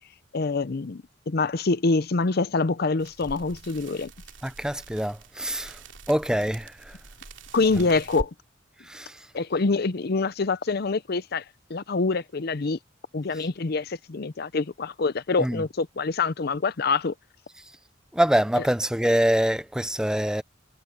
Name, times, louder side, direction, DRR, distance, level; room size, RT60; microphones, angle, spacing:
voice 1, 0.3-4.1 7.5-8.3 9.3-11.4 11.7-12.8 13.1-17.1, left 3 dB, 55° left, 0.6 m, -25 dB
sound 1, 3.0-8.3, right 2 dB, 80° right, 2.8 m, -43 dB
voice 2, 4.4-5.8 6.1-7.0 8.9-9.1 15.4-15.6 18.1-20.4, equal, 5° right, 0.6 m, -25 dB
head